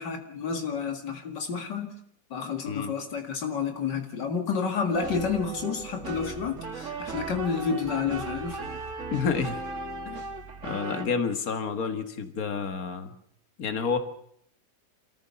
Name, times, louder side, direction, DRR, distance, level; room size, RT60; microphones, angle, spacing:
voice 1, 0.0-1.9 2.3-8.6, left 5 dB, 75° left, 6 dB, 2.7 m, -30 dB
sound 1, 4.9-11.1, right 3 dB, 45° right, 2.2 m, -37 dB
voice 2, 9.1-9.6 10.1-10.2 10.6-13.1 13.6-14.0, left 5 dB, 55° left, 8 dB, 2.1 m, -29 dB
27.0 x 14.5 x 7.0 m, 0.69 s
omnidirectional pair, 1.9 m